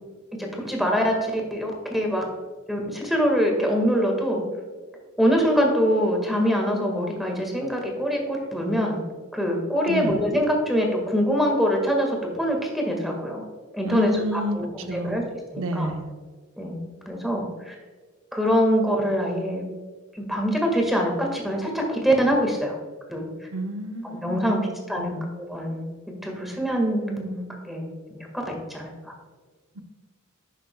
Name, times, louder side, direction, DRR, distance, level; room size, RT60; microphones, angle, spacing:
voice 1, 0.4-2.3 2.7-4.4 5.2-9.0 9.3-13.4 13.7-14.6 14.9-15.2 15.5-15.9 16.6-16.8 17.0-17.7 18.3-19.6 20.1-22.8 23.1-23.3 24.2-25.9 26.2-29.1, equal, ahead, 1 dB, 1.6 m, -24 dB
voice 2, 9.9-10.2 13.8-15.2 15.6-16.1 23.5-25.2 29.8-29.9, equal, 75° right, 7 dB, 0.8 m, -31 dB
11.0 x 7.4 x 2.3 m, 1.4 s
head